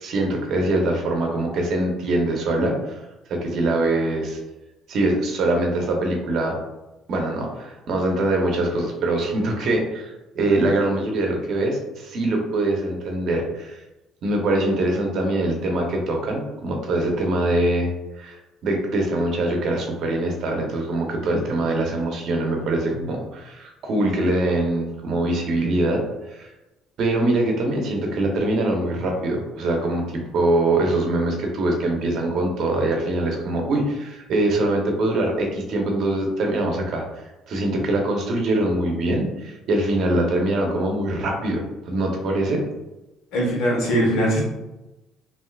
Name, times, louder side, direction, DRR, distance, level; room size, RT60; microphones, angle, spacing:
voice 1, 0.0-3.0 3.3-4.4 4.9-6.6 7.1-13.8 14.2-17.9 18.2-26.0 26.3-26.5 27.0-42.6, right 2 dB, 60° right, 2 dB, 0.7 m, -23 dB
voice 2, 43.3-44.4, equal, 80° left, -3 dB, 1.1 m, -21 dB
3.3 x 2.6 x 2.3 m, 1.0 s
cardioid pair, 115°, 0 cm